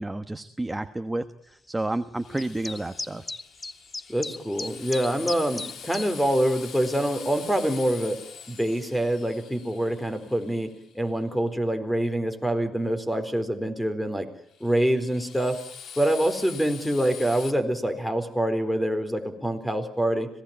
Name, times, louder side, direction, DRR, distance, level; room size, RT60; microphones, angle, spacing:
voice 1, 0.0-3.3, right 2 dB, 15° right, 9 dB, 1.3 m, -31 dB
Drill, 2.2-11.1 14.5-17.5, left 7 dB, 65° left, 3.1 m, -44 dB
sound 1, 2.4-6.1, left 2 dB, 20° left, 1.0 m, -36 dB
voice 2, 4.1-8.2 8.5-14.3 14.6-15.6 16.0-20.3, right 1 dB, 5° left, 10 dB, 4.3 m, -25 dB
26.5 x 18.5 x 8.9 m, 0.68 s
cardioid pair, 90°, 0 cm